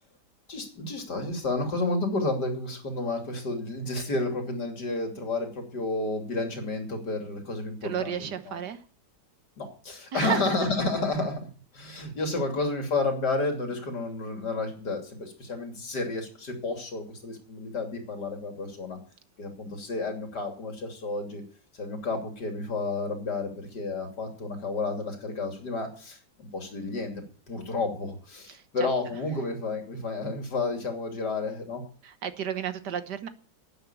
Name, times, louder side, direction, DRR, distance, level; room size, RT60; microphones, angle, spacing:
voice 1, 0.5-8.6 9.6-11.5 11.7-19.0 19.4-21.4 21.8-31.8, left 3 dB, 70° left, 4 dB, 3.5 m, -31 dB
voice 2, 7.8-8.8 10.1-10.7 12.4-12.5 28.5-28.9 32.0-33.3, right 8 dB, 70° right, 11 dB, 1.7 m, -33 dB
11.0 x 9.3 x 8.3 m, 0.41 s
omnidirectional pair, 1.9 m